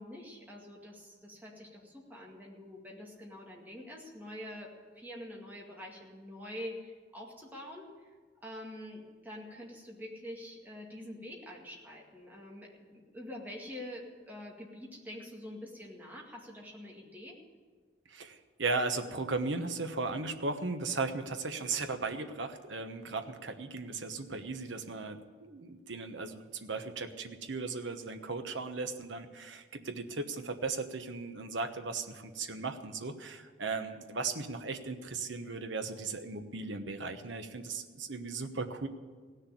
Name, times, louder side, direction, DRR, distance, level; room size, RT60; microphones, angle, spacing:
voice 1, 0.0-4.7 5.0-8.1 8.4-17.4, left 1 dB, 10° right, -2 dB, 2.1 m, -46 dB
voice 2, 18.1-38.9, right 3 dB, 80° right, 7 dB, 1.1 m, -37 dB
17.0 x 6.6 x 10.0 m, 1.5 s
head